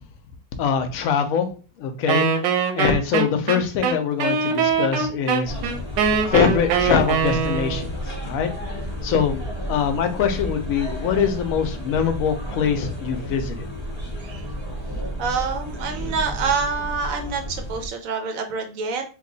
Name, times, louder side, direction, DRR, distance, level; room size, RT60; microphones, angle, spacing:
voice 1, 0.6-1.5 1.8-2.3 2.7-5.5 6.3-7.9 8.2-8.5 9.0-9.4 9.7-13.7, left 7 dB, 65° left, 6 dB, 0.9 m, -23 dB
Wind instrument woodwind instrument, 2.1-7.9, right 6 dB, 85° right, 1.3 m, -22 dB
sound 1, 5.4-17.9, equal, 30° right, 0.5 m, -32 dB
voice 2, 15.2-19.0, right 5 dB, 70° right, 5 dB, 0.8 m, -26 dB
3.2 x 2.3 x 3.8 m, 0.36 s
omnidirectional pair, 1.9 m